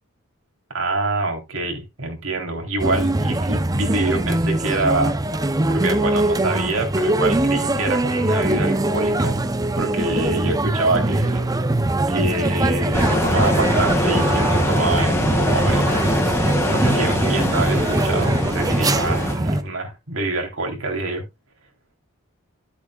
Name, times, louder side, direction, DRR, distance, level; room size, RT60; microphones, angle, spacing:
voice 1, 0.7-5.2 5.7-9.4 9.8-11.5 12.1-16.0 16.7-21.2, right 2 dB, 70° right, 3.5 m, -26 dB
sound 1, 2.8-19.6, right 1 dB, 15° right, 0.6 m, -22 dB
sound 2, 12.9-19.3, left 1 dB, 15° left, 2.0 m, -23 dB
12.5 x 8.4 x 2.3 m
head